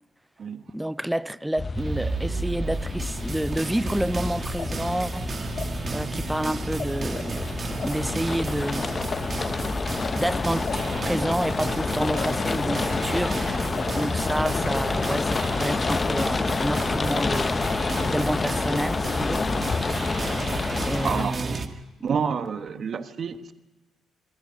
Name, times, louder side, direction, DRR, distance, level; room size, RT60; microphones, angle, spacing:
voice 1, 0.7-5.3 5.9-8.9 9.9-10.7 11.0-13.4 13.9-17.6 18.1-19.5 19.8-19.9 20.9-21.7, right 1 dB, 5° right, 0.6 m, -29 dB
sound 1, 1.6-21.3, left 4 dB, 35° left, 0.8 m, -28 dB
sound 2, 1.7-21.7, right 4 dB, 40° right, 1.9 m, -33 dB
sound 3, 3.9-6.9 7.1-11.8 12.2-14.7 14.9-16.6, left 6 dB, 55° left, 2.6 m, -39 dB
voice 2, 21.0-21.6 22.0-23.5, right 6 dB, 55° right, 1.4 m, -29 dB
27.0 x 10.5 x 9.9 m
supercardioid pair, 70°, 0 cm